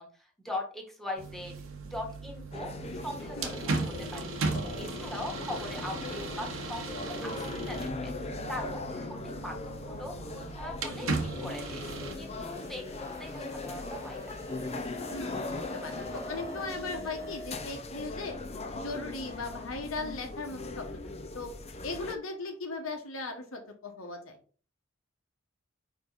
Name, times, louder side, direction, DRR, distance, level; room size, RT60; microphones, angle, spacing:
voice 1, 0.0-1.5 1.9-4.3 4.8-8.1 8.5-11.8 12.1-14.3, left 1 dB, ahead, 1 dB, 1.5 m, -41 dB
sound 1, 1.2-12.2, right 3 dB, 75° right, 1.1 m, -37 dB
sound 2, 2.5-22.1, left 3 dB, 30° left, 0.6 m, -40 dB
voice 2, 3.3-3.7 15.1-18.4 18.7-21.5 21.8-24.4, left 3 dB, 80° left, 4 dB, 1.5 m, -38 dB
sound 3, 11.4-17.6, equal, 15° right, 1.1 m, -46 dB
5.2 x 4.9 x 4.0 m, 0.41 s
head